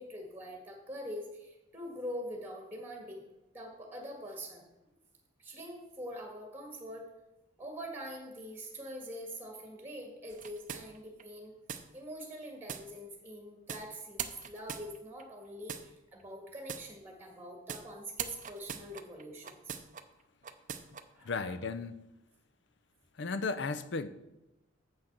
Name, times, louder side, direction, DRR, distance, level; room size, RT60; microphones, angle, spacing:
voice 1, 0.0-3.2 3.5-4.6 5.4-7.1 7.6-11.5 11.9-19.8 21.1-21.5, equal, 10° right, 1.6 m, -44 dB
sound 1, 10.3-11.2 11.7-11.8 12.7-12.8 13.7-13.8 14.2-15.2 15.7-15.8 16.7-16.8 17.7-17.8 18.2-20.0 20.4-21.0, right 8 dB, 40° right, 0.5 m, -41 dB
voice 2, 21.2-22.0 23.2-24.1, left 4 dB, 60° left, 0.5 m, -35 dB
7.6 x 6.3 x 5.9 m
head